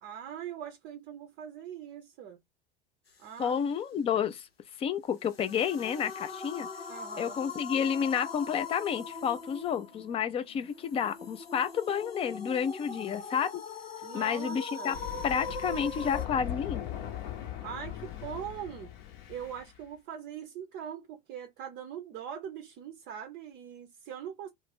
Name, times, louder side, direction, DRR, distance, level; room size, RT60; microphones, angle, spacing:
voice 1, 0.0-2.4 3.2-3.7 6.9-7.4 14.0-15.0 17.6-18.9 19.3-24.5, right 9 dB, 35° right, 0.6 m, -42 dB
voice 2, 3.4-4.5 4.8-6.7 7.2-13.6 14.1-14.9 15.2-16.8, left 7 dB, 20° left, 0.4 m, -30 dB
sound 1, 5.2-16.3, left 4 dB, 90° left, 0.5 m, -41 dB
Thunder, 14.9-19.8, left 12 dB, 50° left, 0.7 m, -39 dB
2.4 x 2.1 x 3.4 m
figure-of-eight pair, 80°, 29 cm